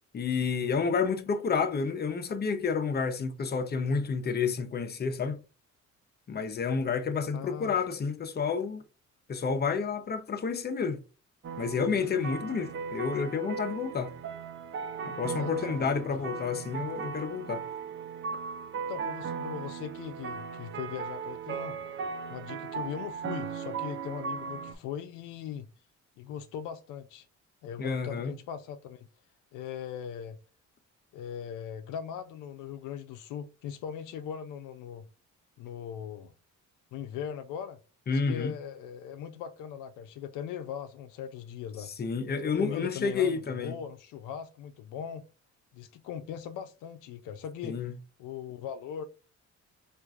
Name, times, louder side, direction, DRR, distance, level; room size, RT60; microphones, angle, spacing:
voice 1, 0.1-5.4 6.3-8.8 9.3-11.0 11.6-14.1 15.0-17.7 27.8-28.3 38.1-38.5 42.0-43.8 47.6-47.9, left 5 dB, 35° left, 0.6 m, -30 dB
voice 2, 7.3-7.8 15.4-15.8 18.9-21.8 22.3-25.7 26.2-27.3 27.6-29.1 29.5-30.4 31.1-35.1 35.6-36.3 36.9-37.8 38.1-41.9 42.6-45.2 45.7-47.8 48.2-49.0, left 8 dB, 90° left, 0.5 m, -39 dB
sound 1, 11.4-24.7, right 6 dB, 40° right, 0.4 m, -37 dB
4.4 x 2.5 x 2.4 m
cardioid pair, 90°, 30 cm